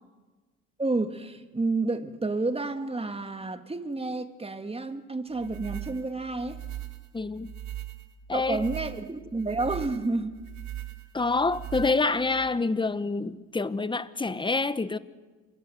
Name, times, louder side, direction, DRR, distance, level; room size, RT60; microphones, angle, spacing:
voice 1, 0.8-6.6 8.3-10.4, right 3 dB, 20° right, 1.9 m, -30 dB
sound 1, 5.3-12.5, right 12 dB, 65° right, 2.3 m, -40 dB
voice 2, 7.1-7.5 8.3-8.7 11.1-15.0, left 3 dB, 15° left, 1.1 m, -27 dB
27.5 x 22.5 x 7.9 m
cardioid pair, 90°, 30 cm